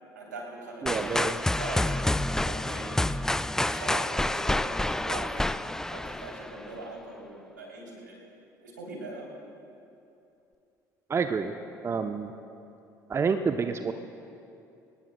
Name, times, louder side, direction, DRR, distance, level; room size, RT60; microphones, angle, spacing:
voice 1, 0.1-2.9 3.6-8.2 8.6-9.3, right 2 dB, 80° right, -2 dB, 3.2 m, -41 dB
voice 2, 0.8-1.4 11.1-11.5 11.8-12.3 13.1-13.9, right 5 dB, 25° right, 8 dB, 0.7 m, -28 dB
sound 1, 0.9-6.8, left 1 dB, 5° left, 0.4 m, -28 dB
25.5 x 19.5 x 2.2 m, 2.7 s
figure-of-eight pair, 55°, 10 cm